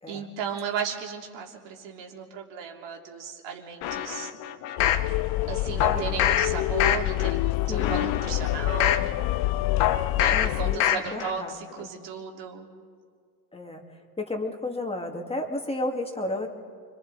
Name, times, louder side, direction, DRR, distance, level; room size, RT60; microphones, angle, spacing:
voice 1, 0.1-4.3 5.5-9.1 10.2-12.7, right 7 dB, 65° right, 1 dB, 3.1 m, -35 dB
sound 1, 3.8-5.1 5.8-6.5 6.8-7.3 7.8-9.1 9.8-10.5 10.8-11.3 11.7-11.8, left 11 dB, 80° left, 1.2 m, -25 dB
sound 2, 4.8-10.8, left 17 dB, 55° left, 0.5 m, -27 dB
voice 2, 7.7-8.2 10.3-10.8 11.1-11.5 11.8-11.9 13.5-16.5, left 2 dB, 15° left, 2 dB, 2.3 m, -33 dB
29.5 x 23.0 x 4.1 m, 2.1 s
supercardioid pair, 110°, 45 cm